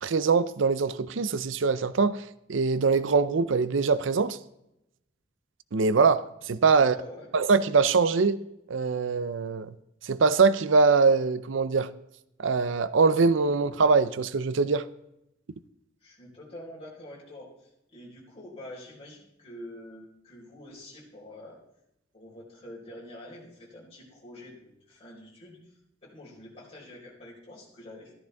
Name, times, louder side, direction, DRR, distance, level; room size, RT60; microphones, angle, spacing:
voice 1, 0.0-4.4 5.7-6.9 7.3-8.4 8.7-9.7 10.0-11.9 12.4-14.9, right 4 dB, 80° right, 0.5 m, -23 dB
voice 2, 6.8-7.3 16.0-21.6 22.1-25.7 26.0-28.1, left 1 dB, 30° left, 4.5 m, -46 dB
14.5 x 13.0 x 3.5 m
head